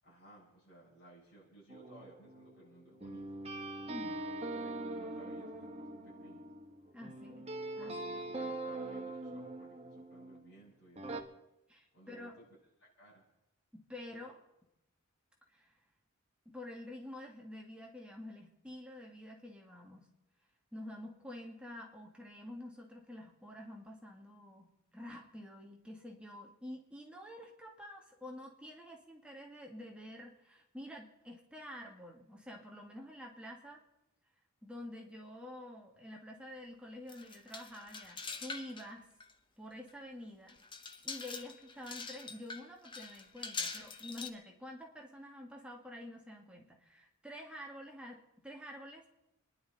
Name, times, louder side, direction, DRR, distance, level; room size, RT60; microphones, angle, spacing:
voice 1, 0.0-3.4 3.9-6.5 7.8-11.3 11.9-12.4 12.8-13.2 14.1-14.3, right 1 dB, 50° left, -6 dB, 6.7 m, -58 dB
sound 1, 1.7-10.5 11.0-11.2, right 2 dB, 30° right, 1.4 m, -42 dB
voice 2, 3.9-4.2 6.9-7.5 7.8-8.0 11.7-12.4 13.7-14.3 15.5-15.7 16.5-20.1 20.7-33.8 34.6-39.1 39.6-40.6 41.0-49.0, left 1 dB, 5° right, 0 dB, 1.9 m, -48 dB
sound 2, 37.1-38.9 39.2-39.3 39.9-40.0 40.5-44.3, left 4 dB, 20° left, 0.9 m, -44 dB
29.5 x 11.0 x 4.1 m, 0.88 s
head